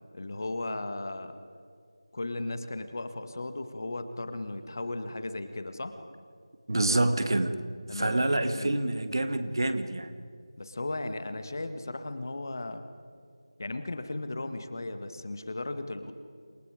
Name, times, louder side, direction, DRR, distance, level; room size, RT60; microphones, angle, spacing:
voice 1, 0.1-1.4 2.1-6.0 7.9-8.3 8.6-8.7 10.6-12.8 13.6-16.1, left 2 dB, 40° left, 9 dB, 1.8 m, -36 dB
voice 2, 6.7-7.6 7.9-10.2, right 2 dB, 55° right, 10 dB, 2.0 m, -27 dB
28.0 x 28.0 x 5.1 m, 2.2 s
figure-of-eight pair, 175°, 3 cm